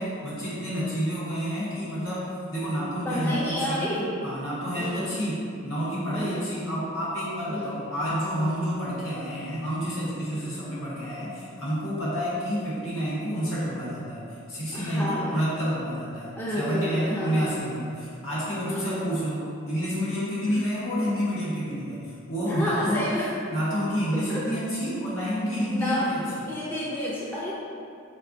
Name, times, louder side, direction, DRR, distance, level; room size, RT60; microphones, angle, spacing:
voice 1, 0.0-3.9 4.2-23.1 23.5-26.5, equal, 75° left, -9 dB, 1.4 m, -29 dB
voice 2, 3.0-4.1 4.8-5.2 6.1-6.4 7.5-7.7 10.3-10.7 14.7-15.3 16.4-17.6 18.6-19.1 20.5-20.6 22.4-23.3 24.1-24.4 25.2-25.3 25.7-26.1 26.5-27.5, left 1 dB, 10° left, -7 dB, 0.4 m, -30 dB
4.3 x 3.6 x 2.6 m, 2.5 s
head